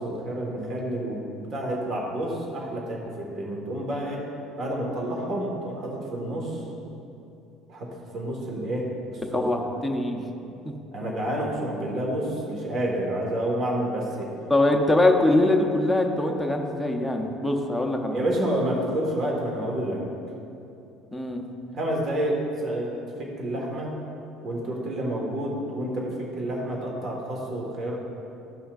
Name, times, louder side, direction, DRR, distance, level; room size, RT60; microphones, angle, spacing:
voice 1, 0.0-4.2 4.6-6.6 7.7-9.5 10.9-14.3 18.1-20.0 21.7-23.9 24.4-28.0, right 1 dB, 40° right, -2 dB, 1.5 m, -29 dB
voice 2, 9.3-10.3 10.6-10.8 14.5-18.3 21.1-21.4, left 2 dB, ahead, 1 dB, 0.6 m, -23 dB
13.5 x 5.6 x 2.5 m, 2.8 s
cardioid pair, 155°, 0 cm